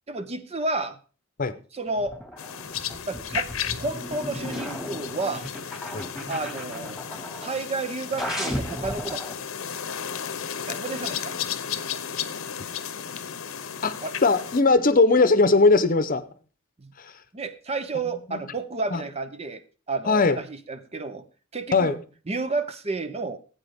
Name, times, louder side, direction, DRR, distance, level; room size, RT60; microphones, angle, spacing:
voice 1, 0.1-1.0 1.7-2.2 3.1-3.5 3.8-5.5 6.3-7.0 7.4-9.2 10.7-11.4 14.0-14.1 16.8-16.9 17.3-19.6 19.9-21.3 21.5-22.0 22.3-23.4, right 3 dB, 30° right, 11 dB, 0.7 m, -31 dB
sound 1, 1.9-7.6 8.2-9.3, left 1 dB, ahead, 2.1 m, -35 dB
sound 2, 2.4-14.6, left 8 dB, 85° left, 0.9 m, -34 dB
voice 2, 14.2-16.2 17.0-17.1 18.3-18.4 18.9-19.0 20.1-20.4 21.7-22.0, left 3 dB, 40° left, 12 dB, 0.8 m, -19 dB
16.5 x 9.0 x 3.6 m, 0.38 s
head